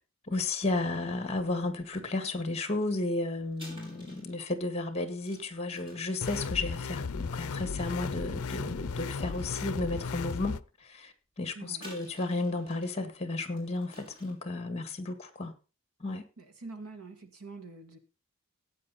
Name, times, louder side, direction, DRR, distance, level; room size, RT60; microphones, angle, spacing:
voice 1, 0.3-15.5 16.0-16.2, left 2 dB, 30° left, 1.9 m, -33 dB
sound 1, 1.9-2.2 3.5-8.3 8.9-9.5 9.9-10.0 11.7-13.0 13.4-14.5, left 1 dB, 25° right, 6.1 m, -52 dB
sound 2, 6.2-10.6, left 5 dB, 80° left, 0.6 m, -35 dB
voice 2, 11.6-11.9 16.4-18.0, right 3 dB, 85° right, 2.2 m, -45 dB
15.5 x 9.4 x 4.2 m
head